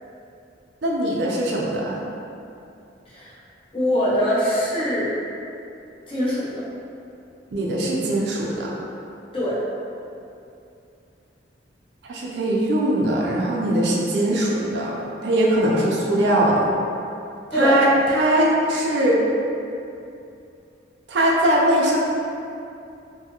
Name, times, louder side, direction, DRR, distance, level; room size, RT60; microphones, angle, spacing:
voice 1, 0.8-2.0 7.5-8.7 12.1-15.0 15.2-16.6 17.5-19.2 21.1-22.0, right 1 dB, 70° right, -3 dB, 0.4 m, -21 dB
voice 2, 3.7-5.1 6.1-6.7 9.3-9.6 17.5-17.8, equal, 30° left, -8 dB, 0.6 m, -22 dB
2.6 x 2.3 x 2.9 m, 2.7 s
head